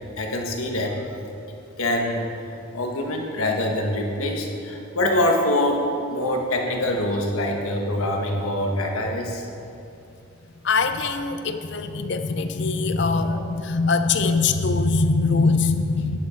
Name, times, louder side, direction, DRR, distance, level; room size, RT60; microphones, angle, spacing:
voice 1, 0.2-1.0 1.5-5.8 6.1-9.5, left 1 dB, 85° left, 1 dB, 1.4 m, -25 dB
voice 2, 10.6-16.2, left 3 dB, 55° left, 9 dB, 0.5 m, -22 dB
11.0 x 10.5 x 3.8 m, 2.7 s
head